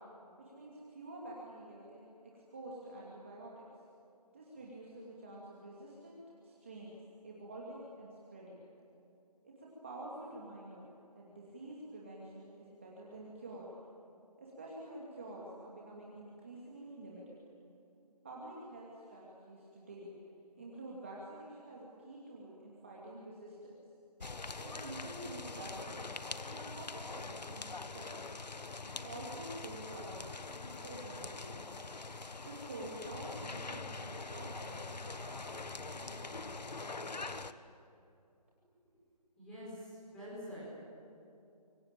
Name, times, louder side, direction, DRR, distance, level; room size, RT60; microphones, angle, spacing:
voice 1, 0.4-2.0 2.3-3.6 4.3-6.2 6.4-7.0 7.2-8.6 9.4-10.9 11.1-13.7 14.4-17.4 18.2-20.1 20.6-23.7 24.6-26.1 26.5-28.2 28.8-31.7 32.4-37.2, right 1 dB, 20° right, -5 dB, 2.6 m, -48 dB
sound 1, 24.2-37.5, left 3 dB, 90° left, 1.4 m, -44 dB
voice 2, 39.4-40.6, equal, 5° left, -10 dB, 5.0 m, -46 dB
27.5 x 23.5 x 9.0 m, 2.7 s
figure-of-eight pair, 180°, 21 cm